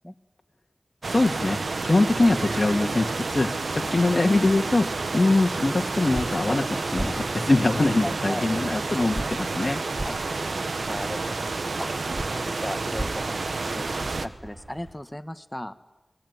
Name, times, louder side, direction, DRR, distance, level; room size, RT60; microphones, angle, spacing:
sound 1, 1.0-14.3, right 3 dB, 80° right, 1.1 m, -30 dB
voice 1, 1.1-9.8, left 2 dB, 45° left, 2 dB, 1.8 m, -23 dB
sound 2, 6.1-6.3 6.9-7.1 9.1-9.3 9.9-10.1 12.1-12.3 12.9-13.1, right 1 dB, 10° right, 1.7 m, -30 dB
voice 2, 8.0-8.5 10.0-10.2 10.8-11.9 12.3-13.5 13.7-15.7, left 1 dB, 15° left, 10 dB, 1.5 m, -36 dB
sound 3, 8.7-14.9, right 1 dB, 50° right, 7.9 m, -48 dB
22.5 x 19.5 x 9.4 m, 1.0 s
cardioid pair, 40°, 0 cm